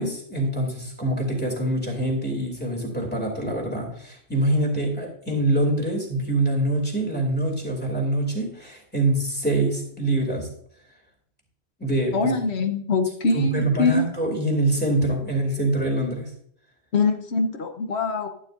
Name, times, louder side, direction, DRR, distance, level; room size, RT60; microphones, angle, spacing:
voice 1, 0.0-10.5 11.8-12.3 13.3-16.3, right 1 dB, 10° left, 0 dB, 2.7 m, -25 dB
voice 2, 12.1-14.0 16.9-18.3, left 3 dB, 70° left, 7 dB, 1.3 m, -23 dB
11.5 x 11.5 x 2.6 m, 0.65 s
omnidirectional pair, 1.2 m